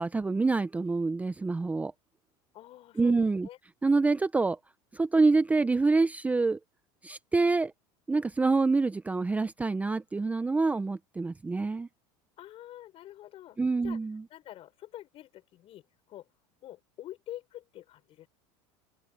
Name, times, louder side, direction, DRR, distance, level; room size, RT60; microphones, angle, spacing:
voice 1, 0.0-1.9 3.0-3.5 3.8-4.6 4.9-6.6 7.0-7.7 8.1-11.9 13.6-14.2, right 3 dB, 10° right, 0.6 m, -26 dB
voice 2, 2.5-3.6 12.4-14.0 14.3-16.3 16.6-18.3, left 13 dB, 45° left, 5.3 m, -47 dB
supercardioid pair, 115°, 13 cm